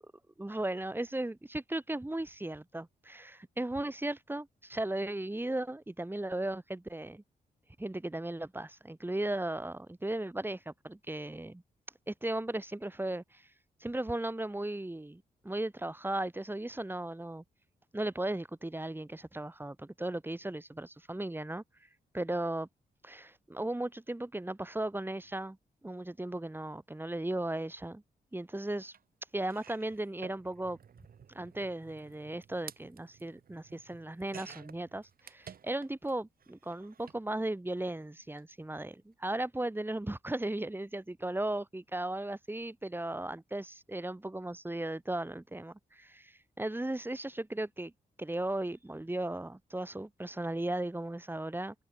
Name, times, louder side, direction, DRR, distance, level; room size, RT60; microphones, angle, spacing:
voice 1, 0.4-7.2 7.8-11.6 12.1-13.5 13.8-17.4 17.9-21.6 22.1-22.7 23.0-25.6 25.8-28.0 28.3-28.9 29.3-30.8 31.3-47.9 48.2-51.7, right 1 dB, 15° right, 3.9 m, -36 dB
sound 1, 28.9-29.0 29.4-36.1 36.4-37.2 38.2-38.4 38.7-38.8, right 7 dB, 65° right, 2.5 m, -53 dB
open air
cardioid pair, 75°, 16 cm